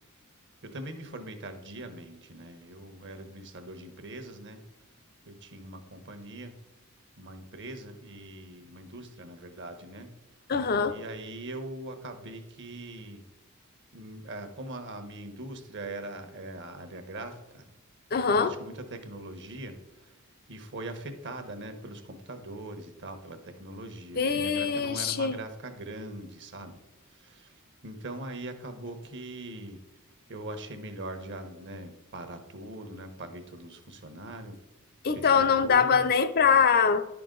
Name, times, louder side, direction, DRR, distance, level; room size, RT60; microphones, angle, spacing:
voice 1, 0.6-4.6 5.3-6.5 7.2-10.1 10.9-13.2 13.9-17.7 18.3-20.2 20.5-26.8 27.0-29.8 30.3-34.6 35.0-36.0, right 1 dB, 55° right, 1.1 m, -41 dB
voice 2, 10.5-11.0 18.1-18.5 24.2-25.4 35.0-37.0, left 6 dB, 45° left, 0.5 m, -23 dB
10.5 x 5.9 x 3.9 m
head